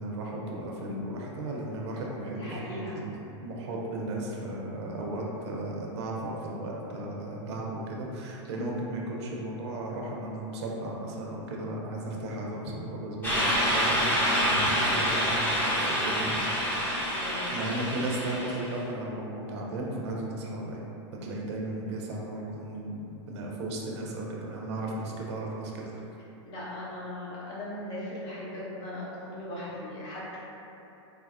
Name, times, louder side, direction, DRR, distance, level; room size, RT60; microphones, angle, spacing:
voice 1, 0.0-12.6 12.9-16.8 17.5-20.8 21.2-26.0, right 1 dB, 65° right, -2 dB, 0.6 m, -35 dB
voice 2, 2.4-3.0 14.5-14.6 17.2-17.8 26.4-30.4, left 1 dB, 55° left, -8 dB, 1.1 m, -38 dB
sound 1, 13.2-18.7, equal, 10° left, 0.7 m, -27 dB
4.0 x 2.0 x 2.4 m, 2.9 s
hypercardioid pair, 125°, 15 cm